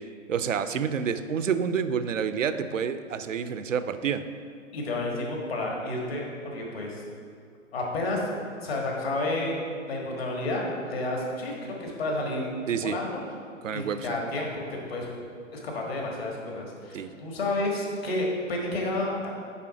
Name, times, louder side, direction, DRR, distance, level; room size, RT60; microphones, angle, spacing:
voice 1, 0.3-4.2 12.7-13.0 13.6-14.2 16.9-17.1, right 7 dB, 70° right, 11 dB, 0.5 m, -28 dB
voice 2, 4.7-7.0 7.7-8.2 8.6-9.6 9.9-12.5 12.8-13.2 13.7-15.0 15.5-19.3, left 2 dB, 50° left, -1 dB, 1.6 m, -30 dB
8.4 x 3.6 x 4.8 m, 2.2 s
figure-of-eight pair, 120°, 39 cm